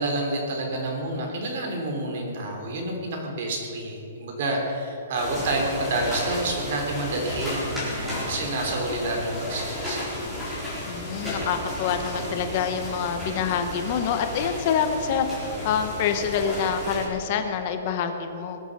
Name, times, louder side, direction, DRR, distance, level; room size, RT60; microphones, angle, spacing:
voice 1, 0.0-10.1, right 2 dB, 50° right, 1 dB, 3.4 m, -29 dB
sound 1, 5.1-17.1, left 1 dB, ahead, 3.9 m, -33 dB
voice 2, 10.9-18.6, left 7 dB, 35° left, 7 dB, 1.0 m, -26 dB
20.0 x 8.0 x 6.6 m, 2.8 s
hypercardioid pair, 170°, 0 cm